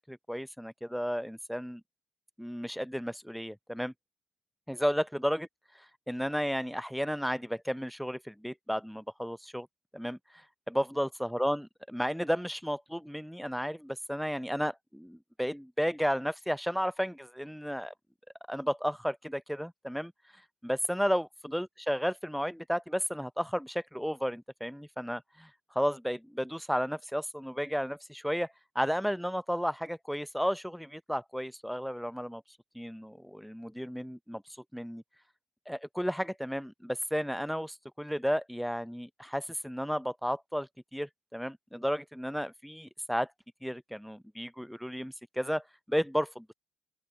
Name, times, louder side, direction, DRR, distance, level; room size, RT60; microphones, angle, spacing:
voice 1, 0.1-1.8 2.4-3.9 4.7-5.5 6.1-9.7 9.9-11.7 11.9-17.9 18.5-20.1 20.6-25.5 25.8-28.5 28.8-32.4 32.8-34.4 34.7-35.0 35.7-43.3 43.6-46.5, equal, ahead, 0.4 m, -33 dB
open air
cardioid pair, 90°, 0 cm